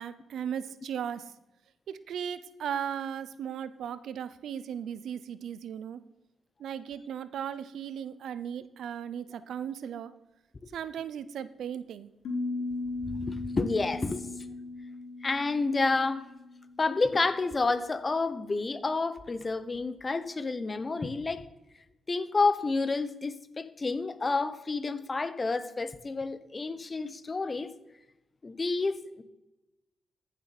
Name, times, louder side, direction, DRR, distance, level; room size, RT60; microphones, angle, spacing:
voice 1, 0.0-1.3 1.9-6.0 6.6-10.1 10.7-12.1, right 8 dB, 80° right, 0.6 m, -37 dB
sound 1, 12.3-17.1, left 3 dB, 75° left, 2.7 m, -37 dB
voice 2, 13.0-14.2 15.2-16.3 16.8-21.4 22.1-27.7 28.4-29.2, left 3 dB, 35° left, 0.9 m, -29 dB
14.5 x 7.3 x 4.1 m
cardioid pair, 65°, 0 cm